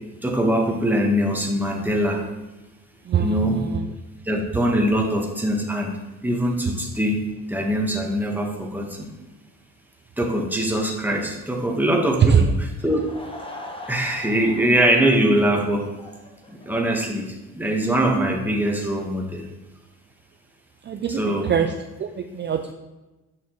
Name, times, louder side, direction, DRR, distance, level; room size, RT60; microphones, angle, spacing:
voice 1, 0.2-2.2 3.2-3.6 4.2-6.0 6.2-9.1 10.2-12.2 12.8-13.0 13.9-15.9 16.5-19.4 21.2-21.5, right 1 dB, 5° right, 1 dB, 1.2 m, -22 dB
voice 2, 3.0-3.9 12.3-12.5 20.8-21.7 22.0-22.7, right 6 dB, 35° right, 5 dB, 0.5 m, -23 dB
Laughter / Crowd, 12.7-17.2, left 1 dB, 15° left, 0.9 m, -41 dB
6.5 x 5.9 x 3.0 m, 1.1 s
cardioid pair, 90°, 30 cm